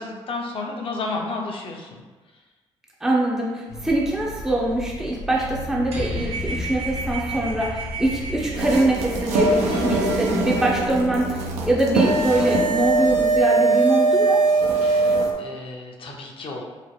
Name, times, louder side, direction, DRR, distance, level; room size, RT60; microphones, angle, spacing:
voice 1, 0.0-2.0 9.7-10.0 14.8-16.6, left 3 dB, 55° left, 0 dB, 0.6 m, -32 dB
voice 2, 3.0-14.4, right 1 dB, 5° right, -3 dB, 0.4 m, -23 dB
sound 1, 3.7-13.4, equal, 90° left, 0.7 m, -37 dB
sound 2, 5.9-11.5, right 1 dB, 65° right, 0.8 m, -33 dB
sound 3, 8.5-15.3, right 3 dB, 85° right, 0.4 m, -21 dB
2.9 x 2.0 x 3.1 m, 1.3 s
supercardioid pair, 65°, 11 cm